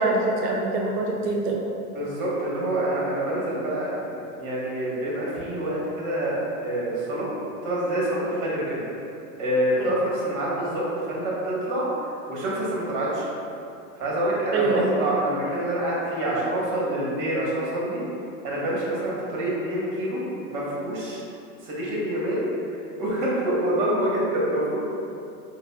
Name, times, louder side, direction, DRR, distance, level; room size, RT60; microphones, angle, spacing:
voice 1, 0.0-1.6 9.8-9.9 14.5-14.9, right 2 dB, 85° right, 0 dB, 0.7 m, -24 dB
voice 2, 1.9-7.3 7.6-8.8 9.4-11.9 12.3-13.3 14.0-18.0 18.4-20.2 20.5-21.2 21.6-22.5 23.0-24.8, right 1 dB, 40° right, -6 dB, 1.2 m, -26 dB
4.9 x 2.2 x 2.2 m, 2.7 s
hypercardioid pair, 115°, 46 cm